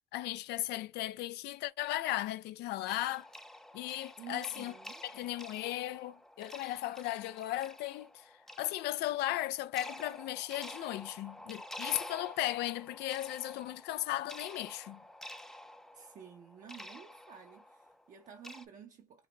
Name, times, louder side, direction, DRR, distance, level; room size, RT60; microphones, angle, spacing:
voice 1, 0.1-3.3 3.7-4.7 5.1-8.1 8.6-15.0, left 15 dB, 80° left, 0.4 m, -36 dB
sound 1, 2.9-18.6, left 1 dB, 5° left, 0.5 m, -49 dB
voice 2, 4.2-5.1 15.9-19.3, right 8 dB, 50° right, 0.7 m, -51 dB
3.9 x 2.1 x 3.2 m
cardioid pair, 110°, 17 cm